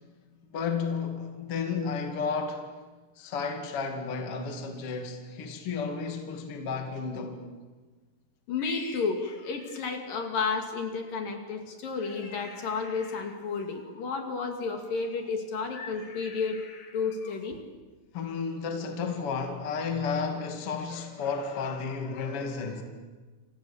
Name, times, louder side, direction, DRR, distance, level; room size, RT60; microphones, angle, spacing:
voice 1, 0.5-2.7 3.2-7.4 18.1-22.8, left 5 dB, 40° left, 2.8 m, -32 dB
voice 2, 8.5-17.6, left 4 dB, 60° left, 4.1 m, -32 dB
29.0 x 26.5 x 7.3 m
omnidirectional pair, 4.5 m